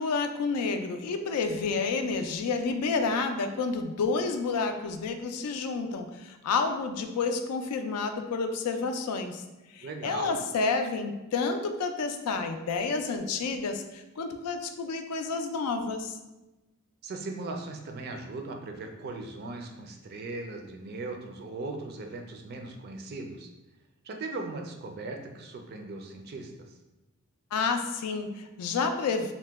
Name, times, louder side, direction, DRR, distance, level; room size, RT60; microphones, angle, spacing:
voice 1, 0.0-9.4 9.7-16.1 27.5-29.3, left 4 dB, 85° left, 7 dB, 0.4 m, -30 dB
voice 2, 9.8-10.4 17.0-23.5 24.0-26.8, right 3 dB, 45° right, 3 dB, 0.4 m, -38 dB
2.9 x 2.1 x 3.4 m, 1.0 s
head